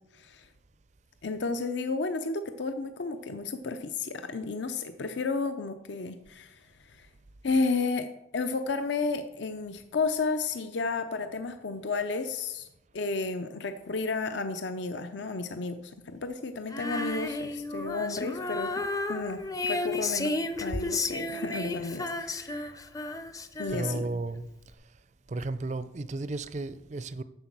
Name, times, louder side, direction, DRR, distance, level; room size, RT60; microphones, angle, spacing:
voice 1, 0.1-0.5 1.2-7.1 7.4-8.1 8.3-12.7 12.9-18.8 19.1-20.3 20.6-22.8 23.6-24.0, left 3 dB, 65° left, 0.5 m, -32 dB
Female singing, 16.7-24.2, left 2 dB, 20° left, 0.5 m, -33 dB
voice 2, 23.7-25.0 25.3-27.2, right 2 dB, 35° right, 0.4 m, -34 dB
7.9 x 7.1 x 6.0 m
head